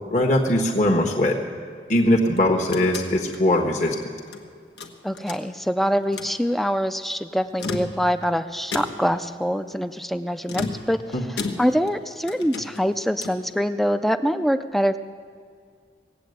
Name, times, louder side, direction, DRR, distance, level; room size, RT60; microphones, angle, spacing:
voice 1, 0.1-1.4 1.9-4.0 11.1-11.2, left 1 dB, 45° left, 0 dB, 1.3 m, -20 dB
sound 1, 2.4-4.4 4.8-5.7 6.0-6.4 7.4-8.3 8.7-9.2 10.5-12.0 12.3-13.5, left 3 dB, 75° left, 1.2 m, -34 dB
voice 2, 5.0-15.0, equal, ahead, 10 dB, 0.4 m, -24 dB
19.0 x 8.4 x 7.9 m, 2.1 s
head